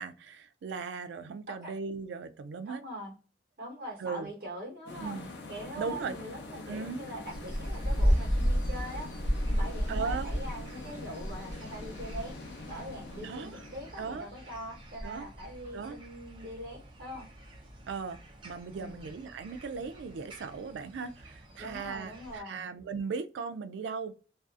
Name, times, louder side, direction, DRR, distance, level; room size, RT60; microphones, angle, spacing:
voice 1, 0.0-2.8 4.0-4.3 5.0-5.3 5.8-6.1 6.7-7.0 9.9-10.3 13.2-13.6 14.0-14.3 15.0-15.3 15.7-16.0 17.9-18.2 18.4-24.1, right 5 dB, 80° right, 0.3 m, -37 dB
voice 2, 2.6-3.1 3.6-5.2 5.5-9.1 9.4-12.4 12.7-17.2 18.7-19.1 21.6-22.6, right 1 dB, 55° right, 1.0 m, -42 dB
sound 1, 4.9-15.4, left 3 dB, 75° left, 0.6 m, -45 dB
sound 2, 7.3-22.4, equal, 30° right, 0.6 m, -35 dB
2.6 x 2.3 x 2.4 m
head